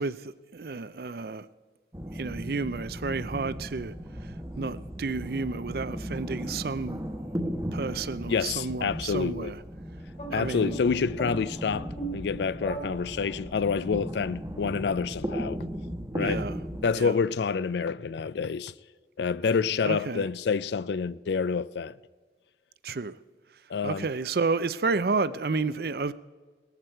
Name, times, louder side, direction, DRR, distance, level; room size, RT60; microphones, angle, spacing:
voice 1, 0.0-1.5 2.1-3.9 4.2-7.0 7.4-9.6 10.3-10.8 16.2-16.6 16.9-17.1 19.8-20.3 22.8-23.2 23.8-26.1, right 4 dB, 55° right, 0.5 m, -31 dB
sound 1, 1.9-16.9, equal, 15° right, 1.1 m, -36 dB
voice 2, 8.3-9.5 10.3-15.6 16.1-16.5 16.8-18.7 19.2-21.9 23.7-24.1, left 5 dB, 70° left, 0.4 m, -28 dB
sound 2, 10.1-13.6, right 2 dB, 35° left, 2.1 m, -40 dB
18.5 x 14.0 x 4.5 m
head